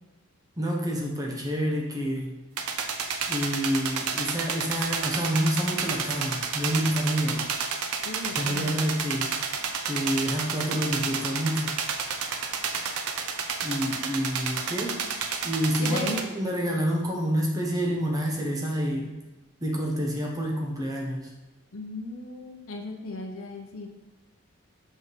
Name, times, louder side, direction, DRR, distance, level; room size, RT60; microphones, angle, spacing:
voice 1, 0.6-2.3 3.3-7.5 8.4-9.3 9.8-11.7 13.6-15.0 15.4-19.2 19.6-21.3, equal, 15° right, -1 dB, 0.9 m, -28 dB
sound 1, 2.6-16.2, right 5 dB, 90° right, 0.6 m, -31 dB
voice 2, 8.0-8.7 15.8-16.2 21.7-23.9, left 2 dB, 75° left, 2 dB, 0.8 m, -36 dB
5.7 x 5.4 x 3.2 m, 1.1 s
head